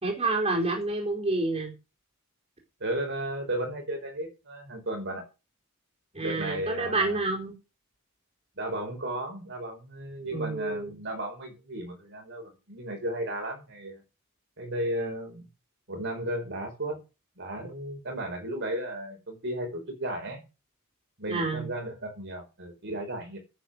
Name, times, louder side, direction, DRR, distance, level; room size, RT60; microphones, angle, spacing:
voice 1, 0.0-1.7 6.1-7.6 10.3-11.0 21.3-21.7, right 2 dB, 30° right, 4.3 m, -28 dB
voice 2, 2.8-5.3 6.2-7.2 8.6-14.0 14.6-15.5 15.9-17.0 17.4-20.4 21.2-23.4, right 1 dB, 55° right, 5.3 m, -34 dB
10.0 x 9.1 x 6.8 m
head